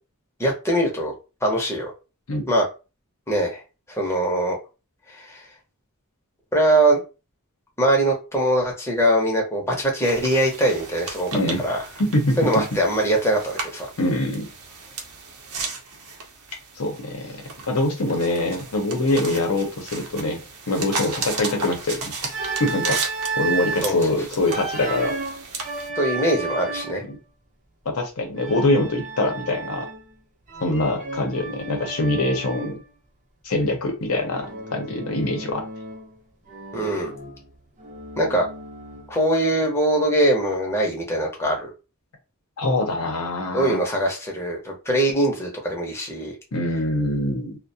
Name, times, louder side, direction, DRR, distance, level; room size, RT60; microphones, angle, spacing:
voice 1, 0.4-1.1 1.4-1.9 2.5-2.6 3.3-3.6 3.9-4.6 5.1-5.4 6.5-7.0 7.8-11.3 11.6-11.8 12.4-13.9 23.8-24.2 26.0-27.1 36.7-37.1 38.2-38.5 39.1-41.7 43.5-46.3, right 1 dB, 10° left, -1 dB, 0.7 m, -22 dB
sound 1, 10.0-25.9, right 4 dB, 75° right, 0.6 m, -35 dB
voice 2, 11.3-11.6 12.0-12.7 14.0-14.5 16.8-22.1 22.6-23.0 23.4-25.1 27.1-27.2 27.9-29.9 30.6-32.8 33.4-35.6 42.6-43.8 46.5-47.6, left 2 dB, 75° left, 3 dB, 0.7 m, -24 dB
Organ, 22.3-23.9 24.5-27.1 28.4-30.1 30.5-32.8 34.3-36.1 36.5-39.2, right 4 dB, 35° right, 0.6 m, -33 dB
2.4 x 2.1 x 2.6 m, 0.30 s
head